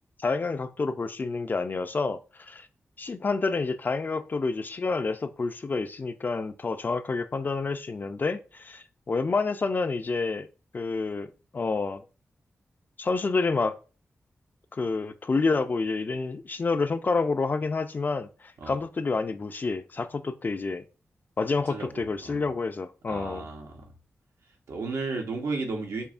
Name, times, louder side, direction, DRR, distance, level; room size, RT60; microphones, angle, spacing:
voice 1, 0.2-2.7 3.0-10.5 10.7-11.3 11.5-12.0 13.0-13.8 14.7-18.3 18.7-20.8 21.4-23.5, left 4 dB, 40° left, 0.4 m, -28 dB
voice 2, 21.7-22.5 23.1-23.9 24.7-26.1, right 3 dB, 90° right, 0.8 m, -34 dB
5.4 x 2.1 x 2.4 m
cardioid pair, 80°, 5 cm